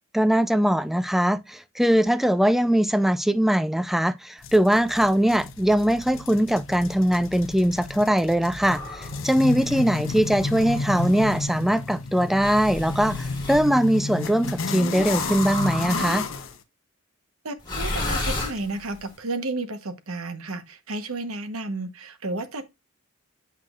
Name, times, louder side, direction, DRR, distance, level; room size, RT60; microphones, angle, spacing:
voice 1, 0.1-16.2, equal, ahead, 0.3 m, -21 dB
sound 1, 4.4-16.5, left 3 dB, 60° left, 0.8 m, -32 dB
sound 2, 8.6-9.2 10.2-11.4 12.4-13.7 15.0-16.5 17.6-19.0, left 2 dB, 20° left, 2.0 m, -32 dB
voice 2, 17.4-22.6, right 2 dB, 75° right, 1.1 m, -32 dB
8.0 x 5.8 x 2.4 m
head